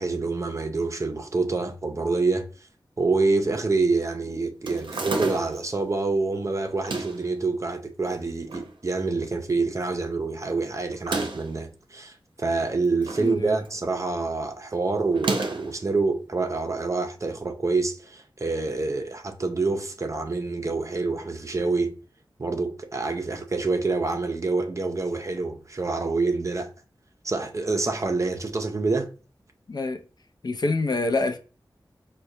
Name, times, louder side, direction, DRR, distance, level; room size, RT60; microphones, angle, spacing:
voice 1, 0.0-2.5 3.0-21.9 22.4-26.7 27.2-29.1, right 3 dB, 40° right, 0.5 m, -27 dB
sound 1, 4.7-5.7 6.7-7.3 8.1-8.7 9.1-9.2 9.3-9.4 10.9-11.6 12.6-13.3 13.7-14.0 15.1-15.8, right 3 dB, 85° right, 0.6 m, -31 dB
voice 2, 13.2-13.6 29.7-30.0 30.4-31.4, left 3 dB, 55° left, 0.4 m, -26 dB
4.6 x 2.2 x 2.7 m
wide cardioid pair, 65°, 8 cm